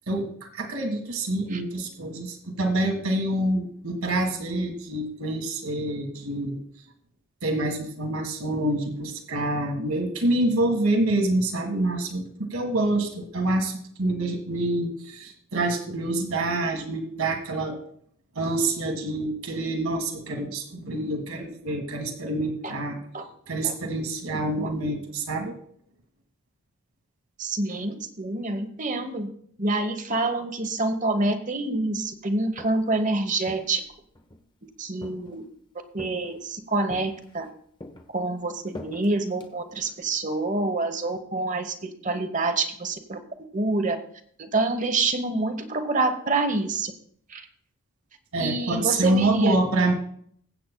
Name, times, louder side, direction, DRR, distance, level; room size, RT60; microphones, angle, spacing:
voice 1, 0.1-6.6 7.4-17.8 18.4-23.0 23.5-25.6 48.3-49.9, right 2 dB, 70° right, 4 dB, 1.7 m, -26 dB
voice 2, 27.4-29.3 29.6-33.8 34.8-35.4 35.9-37.5 38.1-43.2 43.5-44.0 44.4-46.9 47.3-47.4 48.4-49.6, right 2 dB, 35° right, 8 dB, 1.0 m, -27 dB
Walk footsteps, 32.3-33.0 33.4-34.5 35.0-35.6 36.0-36.5 36.9-37.5 37.8-40.0, left 1 dB, 20° left, 0.9 m, -44 dB
21.5 x 8.6 x 2.2 m, 0.63 s
head